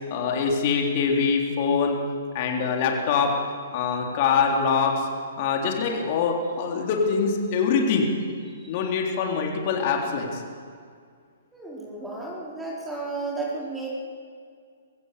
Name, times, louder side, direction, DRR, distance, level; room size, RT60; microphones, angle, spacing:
voice 1, 0.1-2.0 2.3-3.3 3.7-5.1 5.4-8.1 8.7-10.4, left 5 dB, 45° left, 1 dB, 3.7 m, -24 dB
voice 2, 11.5-13.9, right 3 dB, 10° right, -4 dB, 4.1 m, -33 dB
24.0 x 15.5 x 7.0 m, 2.1 s
hypercardioid pair, 125°, 0 cm